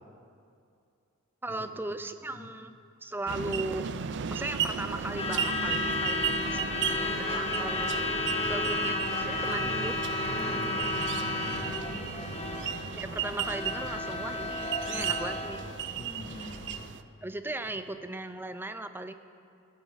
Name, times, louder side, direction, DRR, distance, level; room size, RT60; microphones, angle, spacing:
voice 1, 1.4-2.7 3.0-3.9 4.3-8.2 8.5-10.0 13.0-15.6 17.2-19.1, right 2 dB, 10° right, 10 dB, 0.5 m, -37 dB
sound 1, 3.3-17.0, right 8 dB, 60° right, 0.5 m, -35 dB
Truck / Alarm, 4.9-16.9, left 2 dB, 30° left, 1.3 m, -33 dB
voice 2, 10.3-12.4 14.9-15.3 16.0-16.6, left 1 dB, 80° left, -5 dB, 3.1 m, -44 dB
17.0 x 13.0 x 4.1 m, 2.4 s
head